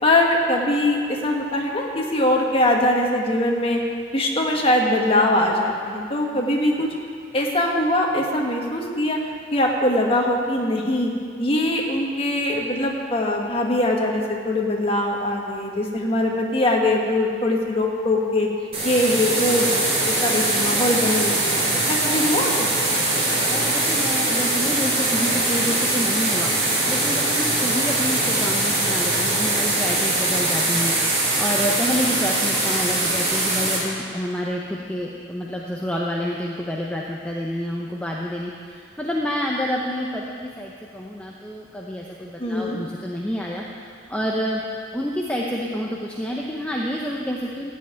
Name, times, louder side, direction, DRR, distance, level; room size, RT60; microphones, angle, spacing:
voice 1, 0.0-3.8 4.1-6.9 7.3-11.1 11.4-18.5 18.8-22.7 42.4-42.8, left 1 dB, 30° left, 0 dB, 1.6 m, -22 dB
sound 1, 18.7-33.8, right 2 dB, 35° right, 3.4 m, -22 dB
voice 2, 20.2-20.8 21.5-21.8 23.4-31.0 31.4-44.6 44.9-47.7, equal, 5° left, -3 dB, 0.8 m, -28 dB
14.5 x 5.7 x 9.0 m, 2.2 s
head